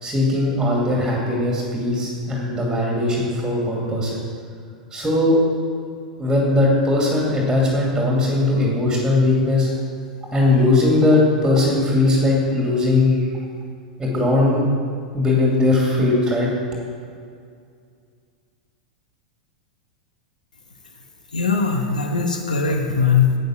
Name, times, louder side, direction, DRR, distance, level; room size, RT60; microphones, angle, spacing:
voice 1, 0.0-4.2 4.9-5.4 6.2-9.7 10.3-13.2 14.0-14.6 15.1-16.5, left 2 dB, 10° right, -3 dB, 2.6 m, -19 dB
voice 2, 21.3-23.4, left 5 dB, 80° left, 3 dB, 1.2 m, -20 dB
10.5 x 8.9 x 6.2 m, 2.3 s
figure-of-eight pair, 95°, 4 cm